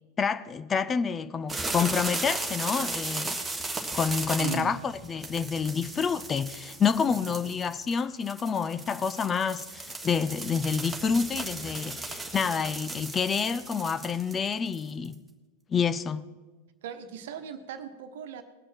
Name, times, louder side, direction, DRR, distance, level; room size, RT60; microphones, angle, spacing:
voice 1, 0.2-3.4 3.9-15.2 15.7-16.2, left 6 dB, 20° left, 0.5 m, -28 dB
sound 1, 1.5-15.1, right 2 dB, 5° right, 1.6 m, -36 dB
voice 2, 4.4-4.8 16.8-18.4, right 6 dB, 55° right, 1.2 m, -37 dB
20.0 x 8.5 x 4.5 m
figure-of-eight pair, 90°, 0 cm